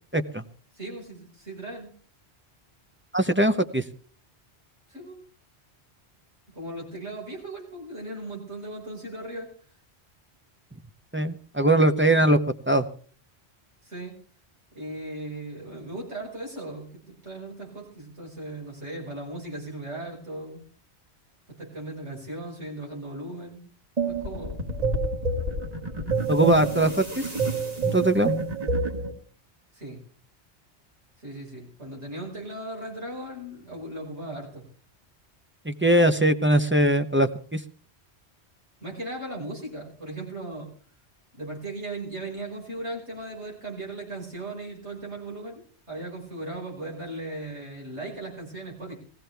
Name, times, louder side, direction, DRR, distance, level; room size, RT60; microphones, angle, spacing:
voice 1, 0.1-0.4 3.1-3.8 11.1-12.4 12.7-12.8 26.3-27.3 27.8-28.3 35.7-37.6, right 1 dB, 15° right, 8 dB, 0.6 m, -21 dB
voice 2, 0.8-1.9 4.9-5.2 6.5-9.5 13.8-14.2 14.7-20.6 21.6-23.6 24.1-24.6 29.7-30.0 31.2-34.6 38.8-40.7 41.3-49.0, right 2 dB, 90° right, -2 dB, 5.8 m, -37 dB
sound 1, 24.0-29.1, right 3 dB, 35° right, 2.0 m, -28 dB
20.0 x 15.5 x 3.4 m, 0.44 s
omnidirectional pair, 1.1 m